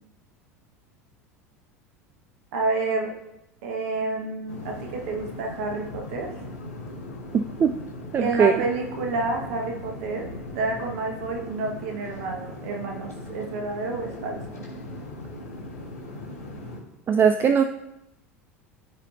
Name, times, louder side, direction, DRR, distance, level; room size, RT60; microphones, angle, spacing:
voice 1, 2.5-3.1 3.6-6.3 8.2-10.3 10.6-14.6, right 3 dB, 60° right, 1 dB, 1.7 m, -29 dB
sound 1, 4.5-16.8, left 1 dB, 75° left, 2.4 m, -39 dB
voice 2, 7.3-7.7 8.1-8.5 17.1-17.6, right 7 dB, 25° right, 8 dB, 0.4 m, -20 dB
14.0 x 4.8 x 2.8 m, 0.89 s
figure-of-eight pair, 75°, 8 cm